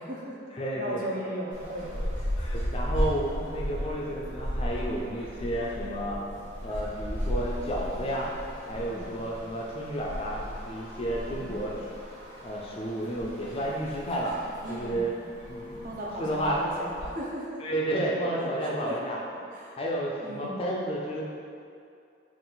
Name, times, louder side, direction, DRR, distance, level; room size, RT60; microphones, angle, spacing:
voice 1, 0.0-0.4 0.7-1.9 8.7-9.1 11.3-11.6 14.6-15.1 15.8-17.6 18.4-19.0 19.3-19.8 20.2-20.6, right 1 dB, 45° right, -3 dB, 0.5 m, -37 dB
voice 2, 0.5-1.0 2.4-6.2 6.6-8.3 8.7-11.7 12.4-14.4 14.7-15.1 15.5-15.6 16.2-16.6 17.6-19.2 19.8-21.2, right 1 dB, 30° left, -3 dB, 0.4 m, -31 dB
sound 1, 1.5-17.1, equal, 85° right, 1.3 m, -35 dB
3.9 x 2.5 x 3.8 m, 2.5 s
head